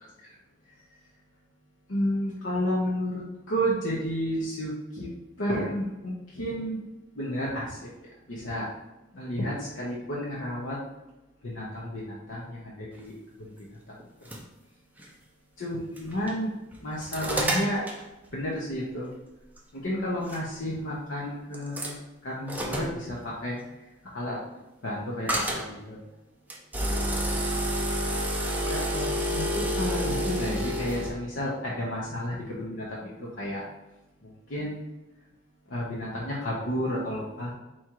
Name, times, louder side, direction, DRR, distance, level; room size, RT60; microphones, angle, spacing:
voice 1, 1.9-3.2 3.5-5.1 5.4-6.8 7.2-7.9 8.3-8.7 9.1-10.8 11.4-13.5 15.6-16.5 16.8-17.8 18.3-19.1 19.7-21.9 22.2-23.6 24.1-24.4 24.8-26.0 28.7-33.6 34.5-34.8 35.7-37.5, equal, 75° left, -5 dB, 0.8 m, -31 dB
sound 1, 14.0-14.4 15.0-15.1 16.0-16.3 16.7-18.0 19.6-19.7 20.2-20.4 21.5-21.9 22.5-23.0 25.3-25.7 26.5-31.1, equal, 10° right, 0.5 m, -29 dB
4.3 x 2.4 x 4.4 m, 1.0 s
head